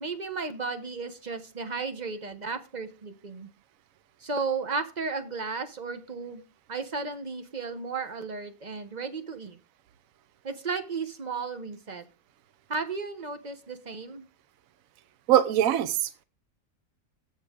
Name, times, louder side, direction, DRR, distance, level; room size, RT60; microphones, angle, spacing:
voice 1, 0.0-3.5 4.2-6.4 6.7-9.6 10.4-12.1 12.7-14.3, right 4 dB, 35° right, 9 dB, 0.9 m, -34 dB
voice 2, 15.3-16.2, right 11 dB, 70° right, 13 dB, 1.1 m, -23 dB
15.0 x 5.4 x 3.6 m, 0.34 s
omnidirectional pair, 1.5 m